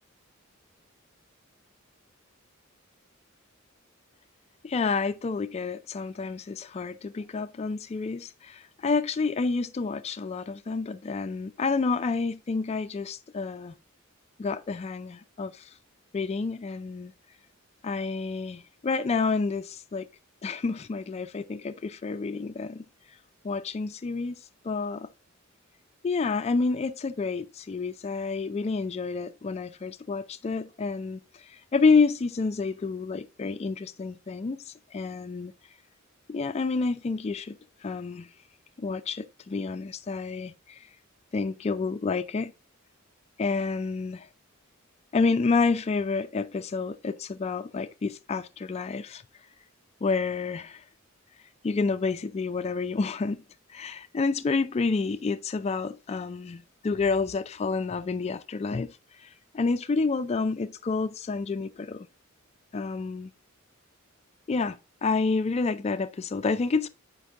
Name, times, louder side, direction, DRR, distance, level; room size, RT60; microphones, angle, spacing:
voice 1, 4.6-13.7 14.4-15.7 16.1-17.1 17.8-20.1 20.4-22.9 23.4-25.1 26.0-35.5 36.3-38.3 38.8-40.9 41.3-42.5 43.4-44.3 45.1-49.2 50.0-50.8 51.6-53.4 53.7-62.1 62.7-63.3 64.5-66.9, left 4 dB, 30° left, 0.3 m, -29 dB
7.9 x 5.2 x 3.6 m
head